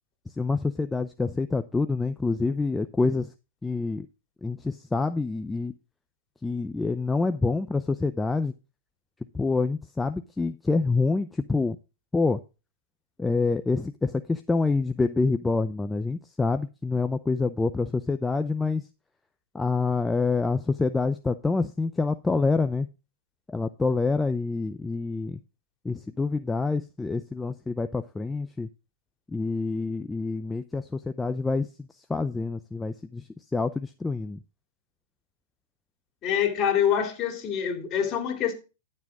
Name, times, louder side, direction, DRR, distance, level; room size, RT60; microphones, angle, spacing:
voice 1, 0.4-3.3 3.6-4.1 4.4-5.7 6.4-8.5 9.3-11.8 12.1-12.4 13.2-18.8 19.5-22.9 23.5-25.4 25.8-28.7 29.3-34.4, left 3 dB, 10° left, 0.5 m, -27 dB
voice 2, 36.2-38.5, left 8 dB, 35° left, 2.9 m, -25 dB
11.0 x 7.6 x 3.6 m
hypercardioid pair, 120°, 0 cm